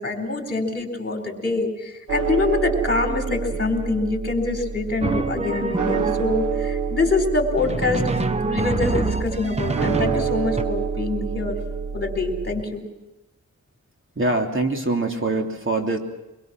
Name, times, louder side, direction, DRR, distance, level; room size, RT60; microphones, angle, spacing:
voice 1, 0.0-8.0 8.4-11.6 11.9-12.8, left 3 dB, 35° left, 3 dB, 4.2 m, -25 dB
sound 1, 2.1-12.6, right 6 dB, 90° right, 1.2 m, -28 dB
Drum, 5.0-6.5 7.6-10.6, right 3 dB, 20° right, 1.0 m, -26 dB
voice 2, 14.1-16.0, right 2 dB, 45° right, 2 dB, 2.9 m, -23 dB
24.0 x 22.5 x 6.1 m, 0.97 s
wide cardioid pair, 110°, 30 cm